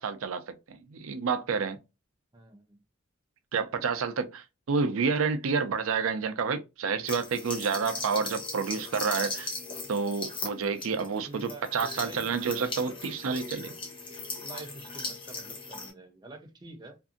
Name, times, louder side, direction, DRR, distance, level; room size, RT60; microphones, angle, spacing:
voice 1, 0.0-1.8 3.5-9.5 9.9-13.7, right 5 dB, 85° right, 0.4 m, -29 dB
voice 2, 2.3-2.8 7.6-8.2 11.2-12.3 14.4-17.0, right 2 dB, 20° right, 0.5 m, -47 dB
sound 1, 7.1-15.9, left 3 dB, 25° left, 0.6 m, -38 dB
2.6 x 2.4 x 2.4 m
head